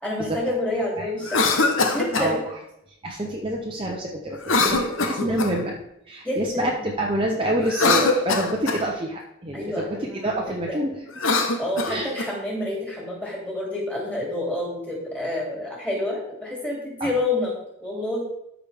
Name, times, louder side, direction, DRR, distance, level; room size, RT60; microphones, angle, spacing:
voice 1, 0.0-1.6 1.9-2.4 5.3-5.5 6.2-6.8 9.5-10.8 11.3-17.5 17.8-18.2, left 1 dB, 5° left, -4 dB, 2.9 m, -29 dB
Cough, 1.2-2.3 4.4-5.7 7.6-8.8 11.1-12.3, left 3 dB, 75° left, 1.0 m, -23 dB
voice 2, 3.0-5.7 6.1-11.0 11.9-12.1 17.0-17.2, right 1 dB, 25° right, -1 dB, 0.8 m, -27 dB
13.0 x 4.9 x 3.5 m, 0.80 s
head